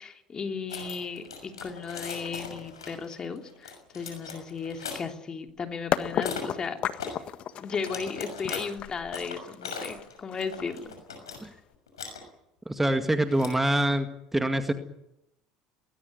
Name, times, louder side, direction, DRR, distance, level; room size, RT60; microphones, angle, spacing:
voice 1, 0.0-6.8 7.6-11.0, left 5 dB, 30° left, 5 dB, 3.0 m, -35 dB
sound 1, 0.7-5.0 6.2-6.4 7.0-7.2 7.7-8.6 9.1-11.4 11.7-12.2 13.1-13.7, left 5 dB, 85° left, 6.2 m, -39 dB
sound 2, 5.9-11.7, left 10 dB, 45° left, 1.6 m, -33 dB
voice 2, 12.7-14.1 14.3-14.7, right 1 dB, 10° right, 8 dB, 2.0 m, -25 dB
20.5 x 18.5 x 9.6 m, 0.83 s
hypercardioid pair, 70°, 2 cm